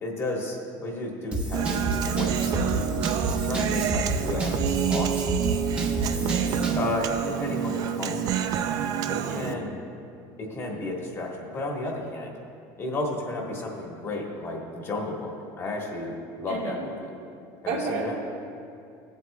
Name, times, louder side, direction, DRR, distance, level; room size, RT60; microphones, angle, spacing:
voice 1, 0.0-1.9 2.1-2.8 3.4-5.1 6.1-6.3 6.8-8.3 9.1-9.7 10.4-12.3 12.8-17.0 17.6-18.1, left 2 dB, 30° left, 0 dB, 1.3 m, -33 dB
Drum kit / Drum, 1.3-6.9, right 1 dB, 15° right, 0.9 m, -30 dB
Human voice, 1.5-9.5, right 9 dB, 45° right, 0.4 m, -28 dB
voice 2, 6.2-6.6 9.2-9.6 16.5-16.8 17.7-18.2, right 3 dB, 70° right, -2 dB, 1.8 m, -32 dB
17.0 x 8.1 x 2.3 m, 2.6 s
cardioid pair, 155°, 9 cm